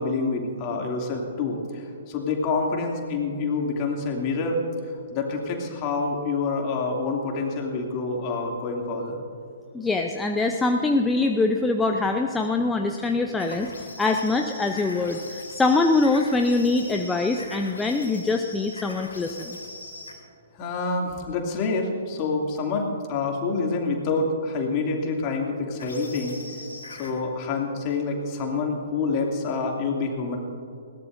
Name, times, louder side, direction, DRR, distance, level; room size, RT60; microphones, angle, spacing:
voice 1, 0.0-4.6 5.1-9.2 20.5-26.4 27.0-30.4, left 3 dB, 35° left, 0 dB, 2.6 m, -27 dB
voice 2, 9.7-13.7 14.0-19.6, left 3 dB, 10° left, 4 dB, 0.7 m, -23 dB
sound 1, 13.4-20.2 25.8-27.1, left 2 dB, 70° left, 3.1 m, -41 dB
20.5 x 18.0 x 2.7 m, 2.4 s
figure-of-eight pair, 120°, 0 cm